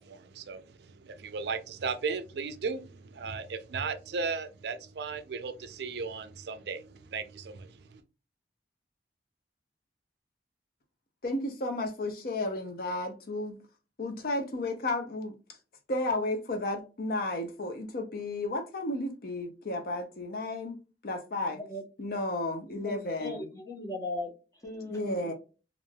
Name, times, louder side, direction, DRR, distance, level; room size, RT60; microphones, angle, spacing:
voice 1, 0.0-8.0, right 4 dB, 60° right, 0.4 m, -36 dB
voice 2, 11.2-13.6 14.0-15.3 15.9-20.8 21.0-21.6 22.0-23.4 24.9-25.3, left 2 dB, 50° left, 0.5 m, -33 dB
voice 3, 21.5-21.8 22.7-25.3, left 2 dB, 15° left, 0.8 m, -39 dB
3.2 x 2.4 x 2.2 m
head